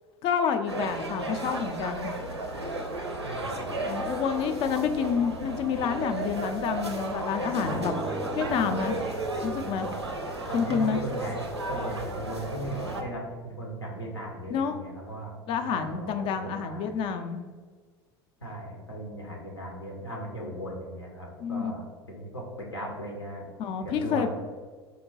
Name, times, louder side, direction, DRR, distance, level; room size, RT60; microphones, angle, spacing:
voice 1, 0.2-2.1 3.9-7.9 8.3-9.0 9.4-9.9 10.5-11.0 14.5-14.8 15.5-17.4 21.4-21.7 23.6-24.3, left 7 dB, 40° left, 7 dB, 0.4 m, -28 dB
sound 1, 0.7-13.0, right 2 dB, 90° right, 0.5 m, -34 dB
voice 2, 3.2-3.7 10.5-16.9 18.4-23.5 23.8-24.3, right 1 dB, 85° left, -1 dB, 0.8 m, -37 dB
sound 2, 7.4-12.1, right 3 dB, 25° right, 0.4 m, -39 dB
3.9 x 2.2 x 3.9 m, 1.5 s
figure-of-eight pair, 75°, 14 cm